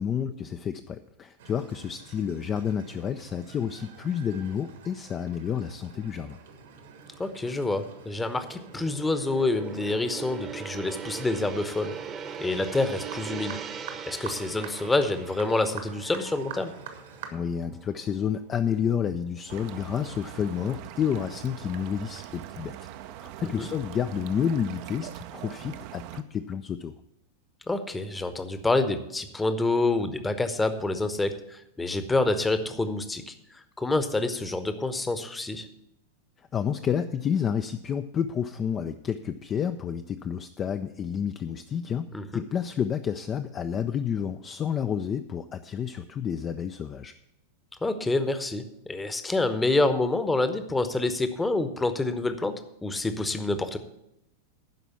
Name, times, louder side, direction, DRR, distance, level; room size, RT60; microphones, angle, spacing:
voice 1, 0.0-6.4 17.3-22.8 23.2-26.9 36.5-42.1 42.3-47.1, left 8 dB, 25° left, 8 dB, 0.4 m, -30 dB
sound 1, 1.4-17.3, right 6 dB, 60° right, 1.3 m, -47 dB
Gong, 6.4-18.8 19.1-19.4, right 7 dB, 25° right, 0.9 m, -41 dB
voice 2, 7.2-11.9 12.4-13.6 14.1-16.7 23.4-23.7 27.7-35.7 42.1-42.4 47.8-52.5 52.8-53.8, left 2 dB, 10° left, 10 dB, 0.9 m, -27 dB
sound 2, 19.5-26.2, right 12 dB, 45° right, 0.6 m, -42 dB
12.0 x 5.0 x 8.3 m, 0.84 s
figure-of-eight pair, 90°, 0 cm